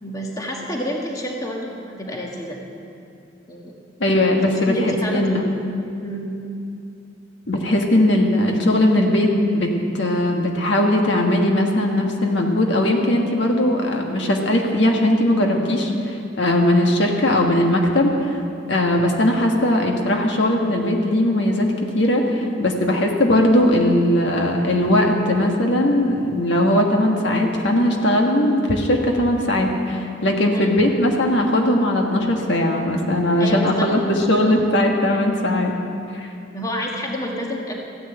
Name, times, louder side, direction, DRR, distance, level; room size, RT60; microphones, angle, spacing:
voice 1, 0.0-2.6 3.5-3.7 4.3-5.2 6.0-6.3 30.5-30.7 33.4-33.9 34.6-34.7 36.5-37.7, equal, 20° left, -1 dB, 1.5 m, -29 dB
voice 2, 4.0-5.4 7.5-18.4 18.7-35.7, left 1 dB, 70° left, 1 dB, 1.6 m, -19 dB
14.5 x 10.5 x 8.0 m, 2.6 s
head